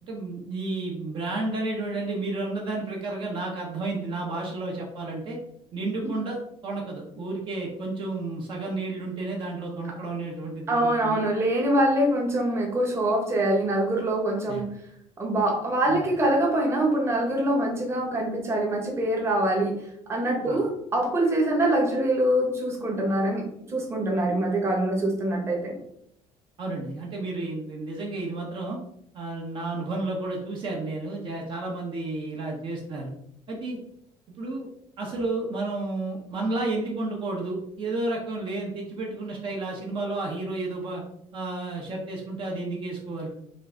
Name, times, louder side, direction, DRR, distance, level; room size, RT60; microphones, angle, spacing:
voice 1, 0.0-5.4 5.7-6.4 6.6-11.2 14.5-14.6 15.9-16.0 20.5-20.6 26.6-28.8 29.1-33.1 33.5-33.8 34.4-34.7 35.0-41.0 41.3-43.3, right 2 dB, 45° right, -1 dB, 0.9 m, -31 dB
voice 2, 10.7-14.7 15.2-19.7 20.1-23.4 23.7-25.7, right 1 dB, 20° right, 0 dB, 1.1 m, -24 dB
5.4 x 2.6 x 3.8 m, 0.74 s
cardioid pair, 155°, 12 cm